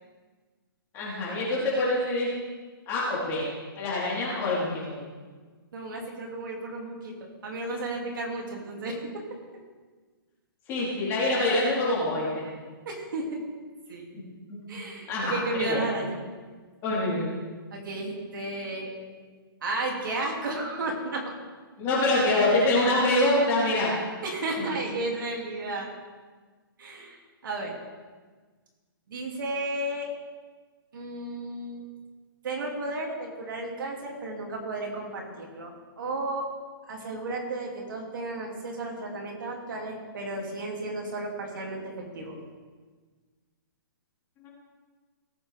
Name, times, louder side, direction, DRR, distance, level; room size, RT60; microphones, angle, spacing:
voice 1, 0.9-2.3 2.9-3.5 3.8-5.0 10.7-12.4 14.1-14.2 14.5-14.8 15.1-15.8 16.8-17.3 21.8-23.9 24.6-24.7, left 2 dB, 20° left, -7 dB, 4.0 m, -25 dB
voice 2, 5.7-9.0 12.9-13.4 13.9-14.1 14.7-16.2 17.7-18.9 19.6-21.2 24.2-25.9 26.8-27.2 27.4-27.7 29.1-30.1 30.9-31.8 32.4-36.5 36.9-42.4, right 2 dB, 60° right, 0 dB, 2.7 m, -33 dB
18.0 x 8.7 x 3.5 m, 1.4 s
hypercardioid pair, 160°, 12 cm